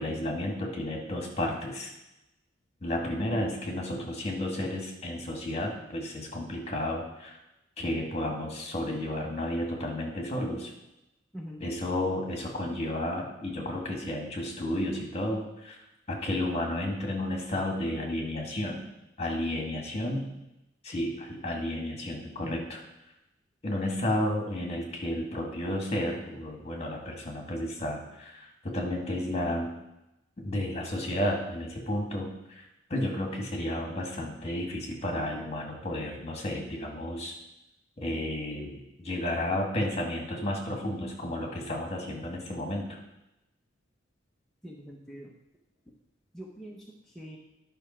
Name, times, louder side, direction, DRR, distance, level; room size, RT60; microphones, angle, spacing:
voice 1, 0.0-1.9 2.8-7.4 7.8-10.7 11.6-15.8 16.1-18.8 19.2-20.3 20.8-22.8 23.6-29.7 30.4-37.3 38.0-43.0, left 1 dB, 35° left, 0 dB, 2.1 m, -32 dB
voice 2, 11.3-11.7 22.4-22.6 44.6-45.3 45.9-46.0 46.3-47.4, equal, ahead, -4 dB, 0.9 m, -44 dB
10.5 x 5.9 x 4.4 m, 0.91 s
head